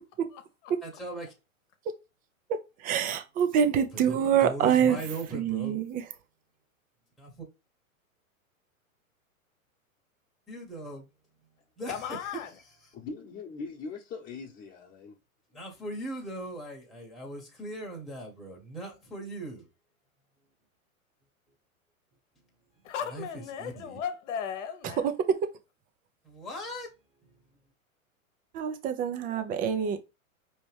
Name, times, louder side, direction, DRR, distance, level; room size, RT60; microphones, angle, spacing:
voice 1, 0.8-1.3 3.8-5.8 7.2-7.4 10.5-11.0 11.8-12.3 12.8-12.9 15.5-19.7 23.1-24.0 26.2-26.9 27.2-27.4, right 1 dB, ahead, 1.1 m, -39 dB
voice 2, 2.8-5.0 5.3-6.0 28.5-30.0, right 8 dB, 20° right, 0.5 m, -26 dB
voice 3, 11.9-12.5 22.8-25.1, left 8 dB, 55° left, 1.1 m, -36 dB
voice 4, 12.9-15.2, left 4 dB, 25° left, 1.1 m, -41 dB
5.1 x 3.1 x 3.3 m
hypercardioid pair, 110°, 43 cm